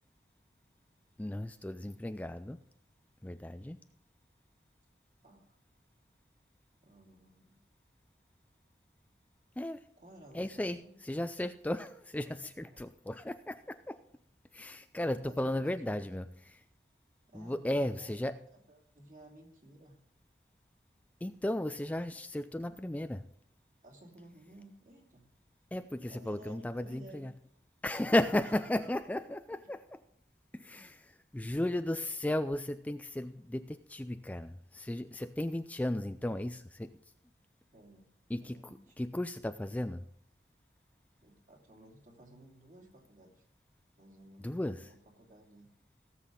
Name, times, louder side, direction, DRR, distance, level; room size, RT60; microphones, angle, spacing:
voice 1, 1.2-2.6 3.2-3.8 9.6-9.8 10.3-14.0 14.5-16.6 17.3-18.4 21.2-23.3 25.7-27.3 27.8-30.0 30.5-37.0 38.3-38.6 39.0-40.1 44.4-44.9, left 1 dB, 10° left, 10 dB, 0.3 m, -35 dB
voice 2, 5.2-5.6 6.8-7.6 10.0-10.9 15.2-16.0 17.3-18.3 18.7-20.0 23.8-25.3 26.1-27.3 28.7-28.8 37.7-38.1 38.4-38.9 41.2-43.4 44.0-45.7, right 1 dB, 50° right, 0 dB, 2.7 m, -55 dB
17.0 x 7.5 x 3.8 m, 0.67 s
head